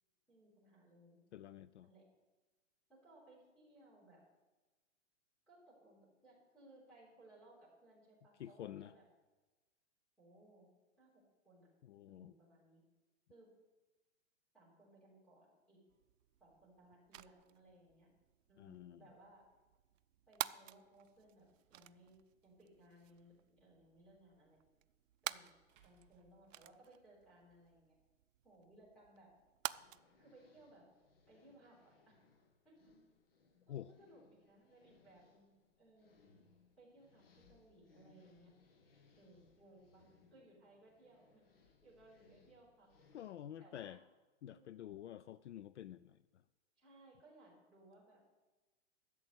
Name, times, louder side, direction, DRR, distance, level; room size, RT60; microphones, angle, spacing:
voice 1, 0.3-1.2 1.8-2.0 2.9-4.2 5.5-9.0 10.2-10.7 11.0-11.7 12.1-12.8 13.3-13.5 14.5-15.8 16.4-18.1 18.5-19.4 20.3-22.2 22.4-24.8 25.2-25.6 25.8-28.0 28.4-29.3 30.2-30.8 31.3-32.2 32.6-32.9 33.7-35.5 35.8-36.2 36.8-38.5 39.2-42.9 43.6-44.0 44.5-44.9 46.8-48.2, right 1 dB, ahead, -7 dB, 3.9 m, -64 dB
voice 2, 1.3-1.9 8.4-8.9 11.8-12.3 18.6-19.0 33.7-33.9 43.1-44.0 44.4-46.4, left 11 dB, 65° left, 16 dB, 0.5 m, -49 dB
sound 1, 15.9-30.0, right 12 dB, 85° right, 0.6 m, -51 dB
sound 2, 25.7-27.3, right 7 dB, 15° right, 0.9 m, -72 dB
sound 3, 29.7-43.3, left 4 dB, 50° left, 1.7 m, -70 dB
13.0 x 7.2 x 7.9 m, 1.2 s
hypercardioid pair, 175°, 38 cm